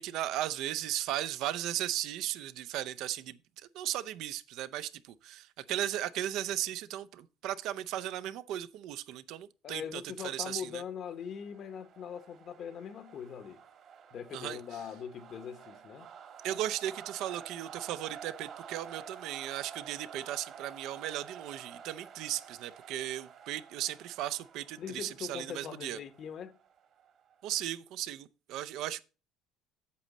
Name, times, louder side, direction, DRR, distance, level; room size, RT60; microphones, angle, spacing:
voice 1, 0.0-3.4 3.7-10.8 14.3-14.8 16.4-26.0 27.4-29.0, right 12 dB, 65° right, 0.5 m, -36 dB
voice 2, 9.6-13.6 14.1-16.1 24.8-26.5, left 7 dB, 40° left, 0.9 m, -41 dB
sound 1, 10.8-27.4, right 7 dB, 45° right, 1.4 m, -50 dB
8.4 x 7.5 x 4.1 m
cardioid pair, 150°, 0 cm